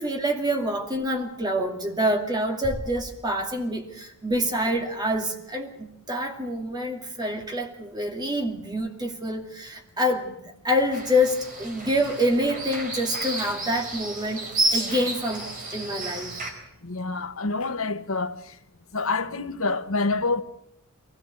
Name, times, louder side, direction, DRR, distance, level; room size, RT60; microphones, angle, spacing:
voice 1, 0.0-10.4 10.6-16.3, equal, 20° right, 2.4 m, -26 dB
sound 1, 2.6-4.1, equal, 20° left, 2.0 m, -39 dB
sound 2, 10.9-16.5, right 2 dB, 40° right, 4.2 m, -31 dB
voice 2, 16.8-18.6 18.9-20.4, left 3 dB, 70° left, 1.3 m, -27 dB
22.5 x 17.0 x 8.2 m
head